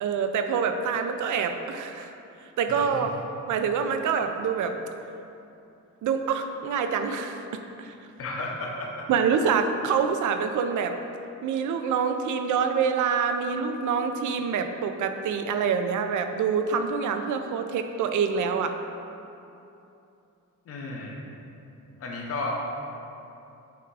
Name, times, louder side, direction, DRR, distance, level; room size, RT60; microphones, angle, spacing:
voice 1, 0.0-2.1 2.6-3.1 3.5-4.8 6.0-7.4 7.8-7.9 9.1-11.0 11.4-18.8, right 6 dB, 70° right, 7 dB, 0.6 m, -26 dB
voice 2, 2.7-3.1 8.2-9.1 20.7-21.3 22.0-22.6, left 2 dB, 50° left, -1 dB, 1.0 m, -33 dB
8.3 x 3.6 x 4.7 m, 2.8 s
cardioid pair, 165°, 31 cm